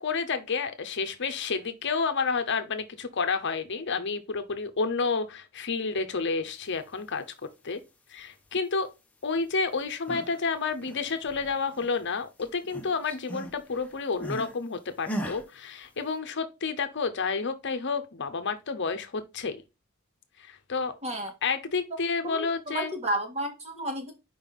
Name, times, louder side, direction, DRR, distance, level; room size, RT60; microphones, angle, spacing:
voice 1, 0.0-7.2 7.6-7.8 8.1-8.9 9.2-19.6 20.4-20.9 21.4-22.9, left 4 dB, 55° left, 0.9 m, -30 dB
sound 1, 9.8-10.4 10.7-12.1 12.4-14.6 15.0-15.4, equal, 5° left, 1.0 m, -38 dB
voice 2, 22.2-24.1, right 1 dB, 30° right, 1.9 m, -32 dB
5.5 x 5.0 x 4.0 m
head